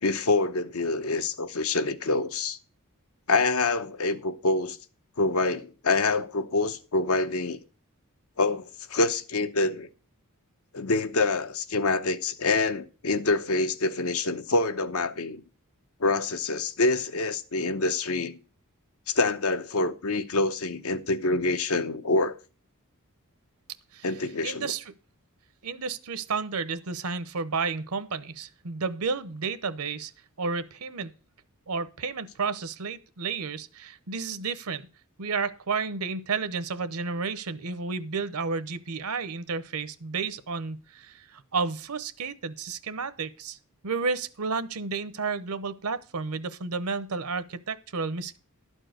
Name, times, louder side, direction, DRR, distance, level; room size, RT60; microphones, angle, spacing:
voice 1, 0.0-2.6 3.3-4.8 5.2-7.6 8.4-9.9 10.7-15.4 16.0-18.4 19.1-22.4 24.0-24.7, left 3 dB, 65° left, 0.9 m, -26 dB
voice 2, 24.4-24.9 25.6-30.1 30.4-31.1 31.7-34.9 35.2-43.6 43.8-48.4, right 4 dB, 75° right, 0.8 m, -31 dB
12.0 x 4.6 x 7.8 m
head